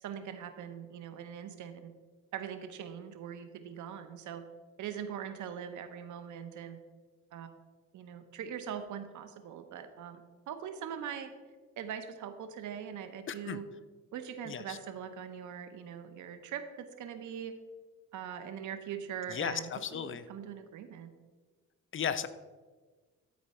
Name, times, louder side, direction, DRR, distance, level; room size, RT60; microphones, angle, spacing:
voice 1, 0.0-1.9 2.3-4.4 4.8-6.8 7.3-7.5 7.9-11.3 11.8-13.6 14.1-17.5 18.1-21.1, right 8 dB, 75° right, 9 dB, 0.9 m, -42 dB
voice 2, 13.3-13.6 14.5-14.8 19.3-20.2 21.9-22.3, left 8 dB, 40° left, 12 dB, 0.6 m, -35 dB
12.5 x 4.5 x 4.3 m, 1.4 s
cardioid pair, 90°, 30 cm